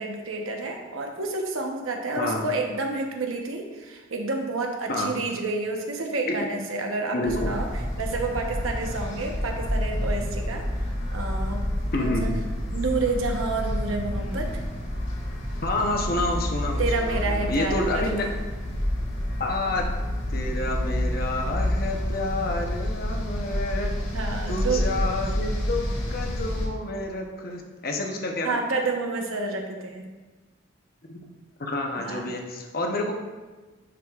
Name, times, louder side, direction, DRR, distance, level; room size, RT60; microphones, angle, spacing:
voice 1, 0.0-7.7 8.0-10.6 11.1-12.3 12.7-14.6 16.8-18.1 24.1-24.9 28.4-30.1 31.9-32.3, right 3 dB, 85° right, 2 dB, 1.0 m, -29 dB
voice 2, 7.1-7.5 11.9-12.4 15.6-18.3 19.4-19.9 20.3-23.9 24.5-28.6 31.1-31.2 31.6-33.2, left 2 dB, 45° left, 2 dB, 0.8 m, -29 dB
sound 1, 7.2-26.7, left 1 dB, 70° left, 1.6 m, -29 dB
10.5 x 4.9 x 2.4 m, 1.3 s
head